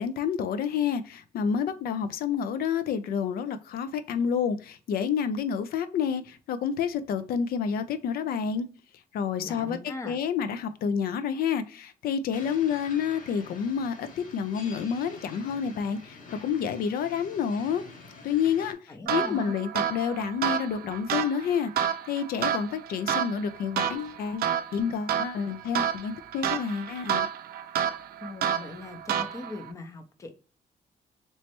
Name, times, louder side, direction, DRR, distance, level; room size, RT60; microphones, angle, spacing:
voice 1, 0.0-8.7 9.1-9.8 10.0-17.8 18.2-27.3, left 7 dB, 85° left, 0.4 m, -29 dB
voice 2, 9.4-10.2 18.9-19.6 28.2-30.4, left 2 dB, 20° left, 0.5 m, -40 dB
sound 1, 12.3-18.7, left 3 dB, 60° left, 0.9 m, -47 dB
sound 2, 19.1-29.7, right 9 dB, 85° right, 0.4 m, -30 dB
3.2 x 3.0 x 2.9 m
wide cardioid pair, 180°, 15 cm